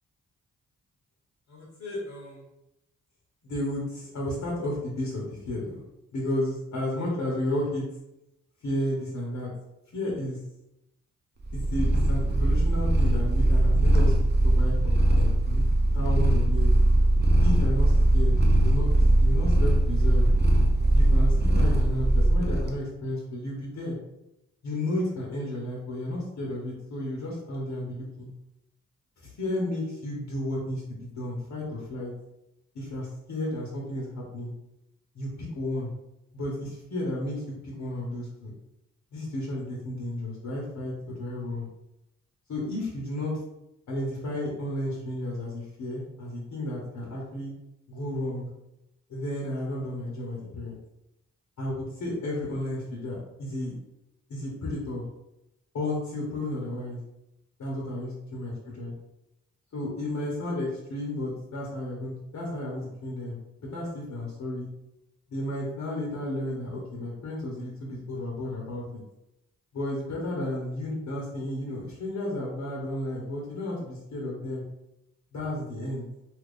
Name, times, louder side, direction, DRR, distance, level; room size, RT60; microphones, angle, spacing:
voice 1, 1.5-2.4 3.4-5.8 6.1-7.8 8.6-9.5 9.9-10.4 11.5-14.2 14.4-15.7 15.9-16.7 17.4-20.3 20.9-24.0 24.6-28.3 29.2-32.1 32.7-34.5 35.1-35.9 36.3-38.5 39.1-41.7 42.5-43.4 43.9-47.5 47.9-48.5 49.1-50.8 51.6-53.7 54.3-55.1 55.7-57.0 57.6-58.5 58.8-58.9 59.7-64.7 65.3-69.0 69.7-74.6 75.3-76.0, left 1 dB, 65° left, -4 dB, 0.9 m, -33 dB
Purr, 11.4-22.7, right 1 dB, 35° right, 0.7 m, -21 dB
2.8 x 2.5 x 3.5 m, 0.89 s
cardioid pair, 65°, 31 cm